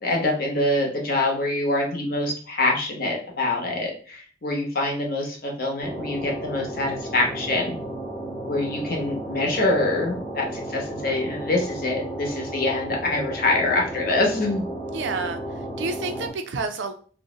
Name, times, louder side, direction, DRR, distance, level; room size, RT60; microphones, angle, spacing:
voice 1, 0.0-7.8 8.5-14.6, left 2 dB, 55° left, 0 dB, 0.9 m, -25 dB
sound 1, 5.8-16.3, right 1 dB, 30° left, 0.8 m, -33 dB
voice 2, 14.9-15.4 15.8-16.9, right 3 dB, 90° right, 7 dB, 0.4 m, -29 dB
2.6 x 2.0 x 3.7 m, 0.43 s
head